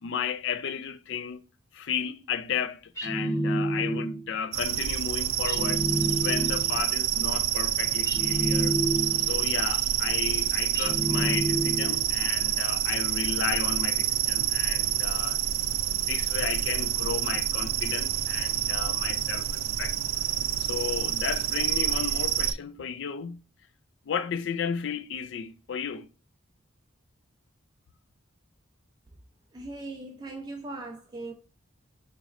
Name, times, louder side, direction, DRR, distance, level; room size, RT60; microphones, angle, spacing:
voice 1, 0.0-1.4 1.7-5.8 6.2-8.7 9.2-15.4 15.9-20.0 20.6-23.4 24.0-26.1, left 7 dB, 60° left, 0.3 m, -33 dB
sound 1, 3.0-4.3 5.5-6.8 8.1-9.4 10.7-12.1, right 1 dB, 15° left, 0.9 m, -29 dB
sound 2, 4.5-22.5, right 12 dB, 85° right, 0.3 m, -27 dB
voice 2, 29.5-31.3, right 2 dB, 20° right, 0.4 m, -39 dB
4.0 x 3.1 x 2.4 m
head